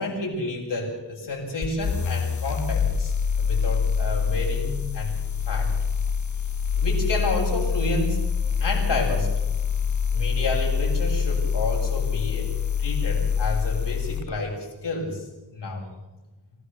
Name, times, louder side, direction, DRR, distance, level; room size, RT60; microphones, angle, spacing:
voice 1, 0.0-3.1 3.4-5.2 5.5-5.7 6.8-8.2 8.6-9.3 10.1-12.5 12.8-15.3 15.5-15.9, left 2 dB, 70° left, -1 dB, 7.5 m, -30 dB
sound 1, 1.6-14.3, left 6 dB, 40° left, 0.9 m, -25 dB
26.5 x 16.5 x 7.0 m, 1.1 s
wide cardioid pair, 135°, 43 cm